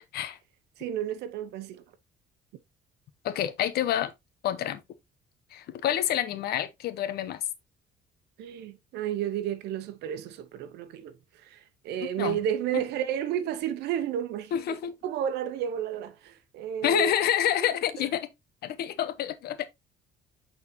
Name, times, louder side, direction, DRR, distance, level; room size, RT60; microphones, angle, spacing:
voice 1, 0.8-1.8 8.4-17.1 18.0-18.1, right 10 dB, 80° right, 0.9 m, -32 dB
voice 2, 3.2-4.1 4.4-4.8 5.5-7.4 12.2-12.4 14.5-14.9 16.8-18.3 18.6-19.6, left 11 dB, 70° left, 0.9 m, -28 dB
8.2 x 4.1 x 2.9 m
cardioid pair, 110°, 17 cm